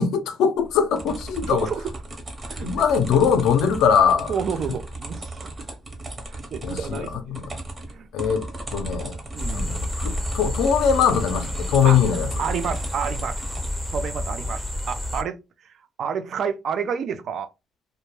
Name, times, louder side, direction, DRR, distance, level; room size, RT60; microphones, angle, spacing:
voice 1, 0.0-1.7 2.6-4.3 6.6-7.4 8.1-8.4 8.7-9.2 9.5-12.3, left 7 dB, 90° left, 0.4 m, -21 dB
sound 1, 0.6-13.7, right 2 dB, 30° right, 0.8 m, -36 dB
voice 2, 1.4-1.9 2.4-2.8 4.3-5.5 6.3-7.4 7.9-8.1 9.3-9.8 11.8-12.0 12.4-13.5 13.9-15.4 16.0-17.5, right 7 dB, 65° right, 0.3 m, -30 dB
sound 2, 9.4-15.2, left 1 dB, 5° right, 0.5 m, -30 dB
2.1 x 2.1 x 3.0 m
cardioid pair, 90°, 0 cm